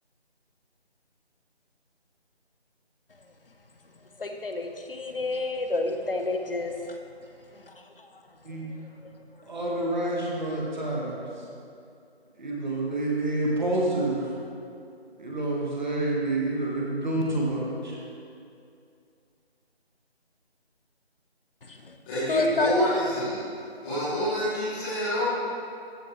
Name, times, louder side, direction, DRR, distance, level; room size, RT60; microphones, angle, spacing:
voice 1, 4.2-7.0 9.0-9.1 21.7-22.0 22.3-22.7, left 2 dB, 55° left, 5 dB, 0.9 m, -29 dB
voice 2, 9.5-11.3 12.4-14.3 15.2-18.0, right 2 dB, 45° right, -3 dB, 1.7 m, -28 dB
voice 3, 22.0-23.4 23.8-25.3, equal, 5° left, -16 dB, 2.4 m, -27 dB
14.0 x 6.0 x 3.3 m, 2.5 s
figure-of-eight pair, 165°, 33 cm